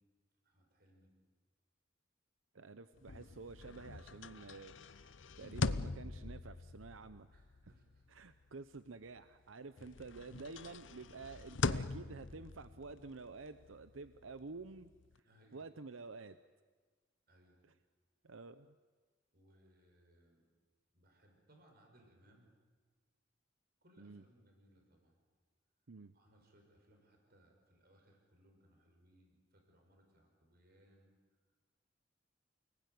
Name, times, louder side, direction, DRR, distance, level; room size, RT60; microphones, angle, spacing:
voice 1, 0.4-1.1 7.3-8.0 15.2-15.7 17.3-17.6 19.3-20.4 20.9-22.5 23.8-25.2 26.1-31.1, equal, 50° right, 2 dB, 5.9 m, -68 dB
voice 2, 2.5-7.3 7.6-7.7 8.1-14.9 15.2-16.4 17.6-17.7 18.2-18.7 24.0-24.2 25.9-26.1, right 3 dB, 85° right, 11 dB, 0.8 m, -50 dB
sound 1, 3.0-9.4 9.8-15.2, left 3 dB, 65° left, 0.8 m, -43 dB
28.5 x 20.0 x 9.5 m, 1.4 s
head